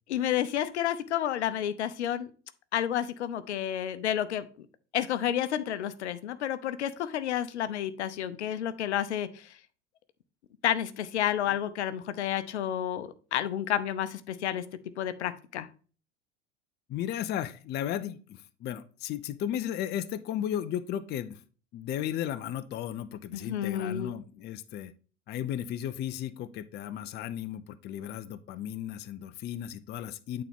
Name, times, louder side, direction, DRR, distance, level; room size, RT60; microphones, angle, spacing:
voice 1, 0.1-2.3 2.7-4.5 4.9-9.3 10.6-14.6 15.0-15.7 23.3-24.1, left 10 dB, 70° left, 12 dB, 0.7 m, -30 dB
voice 2, 16.9-21.4 21.7-24.9 25.3-30.4, left 10 dB, 30° left, 12 dB, 0.5 m, -35 dB
9.0 x 4.2 x 3.6 m, 0.38 s
figure-of-eight pair, 75°, 35 cm